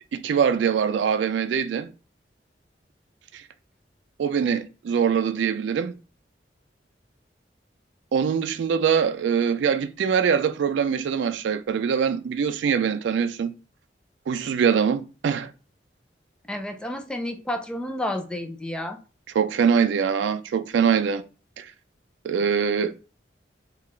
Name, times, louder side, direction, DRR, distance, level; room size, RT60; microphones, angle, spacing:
voice 1, 0.0-1.9 3.3-3.4 4.2-5.9 8.1-13.5 14.3-15.5 19.4-21.2 21.6-21.7 22.2-22.9, right 7 dB, 80° right, 0.3 m, -23 dB
voice 2, 16.5-19.0, left 1 dB, 5° left, 0.3 m, -30 dB
3.6 x 2.4 x 3.2 m
head